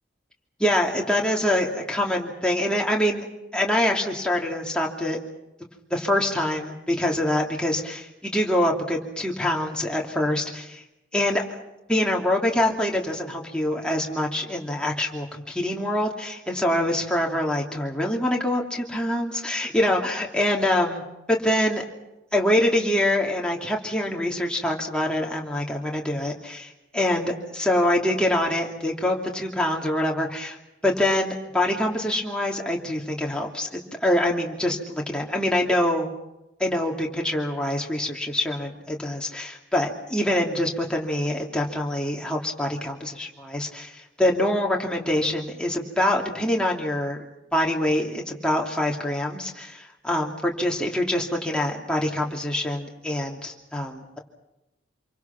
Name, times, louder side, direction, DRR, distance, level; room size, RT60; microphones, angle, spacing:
voice 1, 0.6-3.2 3.5-5.2 5.9-10.8 11.1-11.4 11.9-21.0 21.3-21.8 22.3-30.6 30.8-36.1 36.6-47.2 47.5-54.2, left 1 dB, 5° left, -1 dB, 2.8 m, -25 dB
27.0 x 23.5 x 6.0 m, 0.94 s
head